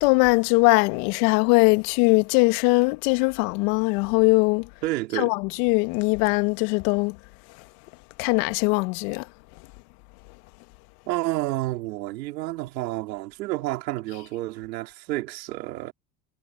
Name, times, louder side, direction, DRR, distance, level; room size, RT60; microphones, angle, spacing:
voice 1, 0.0-4.7 5.1-7.2 8.2-9.3 14.1-14.2, left 29 dB, 70° left, 2.1 m, -21 dB
voice 2, 4.8-5.3 11.1-15.9, right 18 dB, 80° right, 4.1 m, -30 dB
hypercardioid pair, 85°, 49 cm